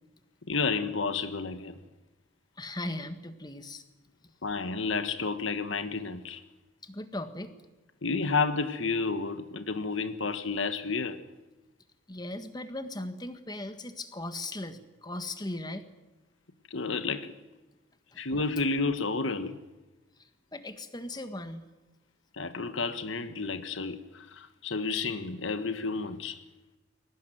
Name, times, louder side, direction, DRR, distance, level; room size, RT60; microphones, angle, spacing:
voice 1, 0.5-1.8 4.4-6.4 8.0-11.2 16.7-17.4 18.2-19.6 22.3-26.4, left 4 dB, 70° left, 1.5 m, -31 dB
voice 2, 2.6-3.8 6.8-7.6 12.1-15.8 18.1-18.2 20.2-21.6, left 1 dB, 20° left, 1.6 m, -38 dB
22.0 x 18.5 x 9.3 m
head